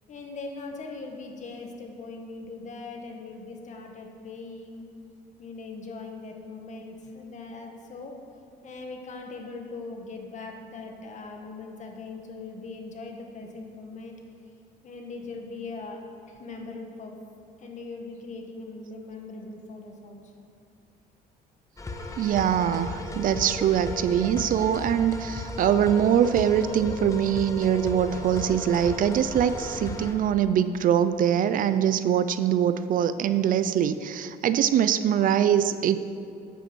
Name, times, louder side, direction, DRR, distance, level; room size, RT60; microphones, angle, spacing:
voice 1, 0.1-4.9 5.4-8.1 8.6-14.1 14.8-16.0 16.3-17.1 17.6-20.5, left 3 dB, 45° left, 2 dB, 1.6 m, -40 dB
sound 1, 21.8-30.1, left 2 dB, 20° left, 1.1 m, -35 dB
voice 2, 22.2-36.0, right 9 dB, 55° right, 12 dB, 0.5 m, -23 dB
9.1 x 7.8 x 6.1 m, 2.5 s
cardioid pair, 110°, 17 cm